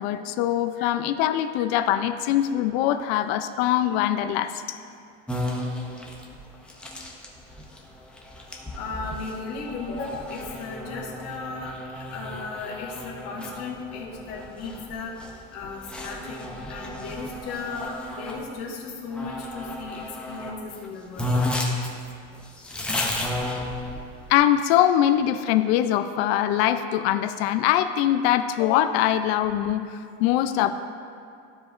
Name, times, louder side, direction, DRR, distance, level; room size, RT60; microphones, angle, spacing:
voice 1, 0.0-4.8 24.3-30.7, left 11 dB, 65° left, 9 dB, 0.5 m, -23 dB
sound 1, 5.3-18.4 19.1-20.6 20.8-20.9 21.2-24.3, left 1 dB, 5° left, 0.5 m, -33 dB
voice 2, 8.8-11.7 12.1-15.1 15.5-21.3 29.0-29.1, left 4 dB, 45° left, -4 dB, 1.7 m, -36 dB
14.0 x 4.9 x 2.5 m, 2.5 s
cardioid pair, 160°, 34 cm